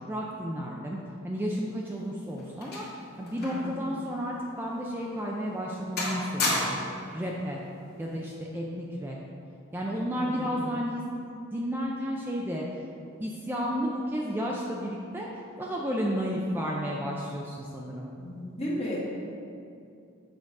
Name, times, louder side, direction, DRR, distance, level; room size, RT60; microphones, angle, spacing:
voice 1, 0.1-1.0 1.2-2.8 3.2-6.8 7.1-7.6 8.0-9.2 9.7-12.7 13.2-15.3 15.6-18.1, equal, 10° right, -3 dB, 0.4 m, -32 dB
sound 1, 1.7-3.8 4.1-4.2 4.9-5.0 5.4-5.7 6.0-7.0 8.0-8.3, left 2 dB, 55° left, 1.6 m, -32 dB
voice 2, 3.4-3.9 10.1-10.4 18.2-19.0, equal, 30° left, -6 dB, 1.5 m, -35 dB
7.5 x 3.9 x 4.6 m, 2.5 s
head